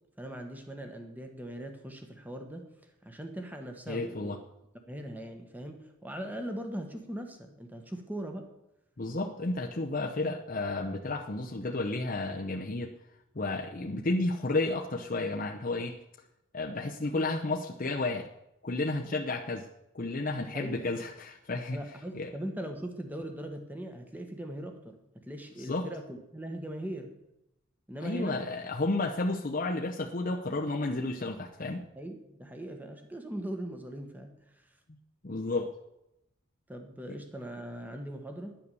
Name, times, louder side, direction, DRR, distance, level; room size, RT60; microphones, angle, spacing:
voice 1, 0.2-2.7 3.0-4.4 4.7-8.5 20.3-20.9 21.7-27.1 27.9-28.4 32.0-34.3 36.7-38.5, right 1 dB, 10° right, 4 dB, 1.4 m, -40 dB
voice 2, 3.9-4.4 9.0-12.9 13.3-16.0 16.5-18.3 18.6-19.7 19.9-21.8 22.1-22.3 25.6-25.9 28.0-31.9 35.2-35.7 37.1-37.2, left 2 dB, 40° left, 2 dB, 0.8 m, -32 dB
10.0 x 9.5 x 6.9 m, 0.87 s
head